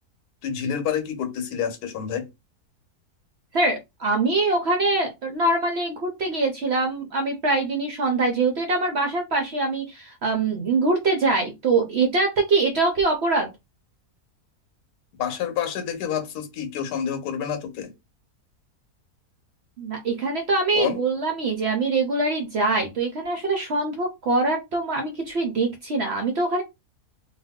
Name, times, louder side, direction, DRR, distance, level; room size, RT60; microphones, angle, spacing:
voice 1, 0.4-2.3 15.2-17.9 20.7-21.0, left 8 dB, 80° left, 1.2 m, -28 dB
voice 2, 3.5-13.5 19.8-26.6, right 3 dB, 65° right, 0.7 m, -23 dB
2.5 x 2.3 x 3.5 m
omnidirectional pair, 1.6 m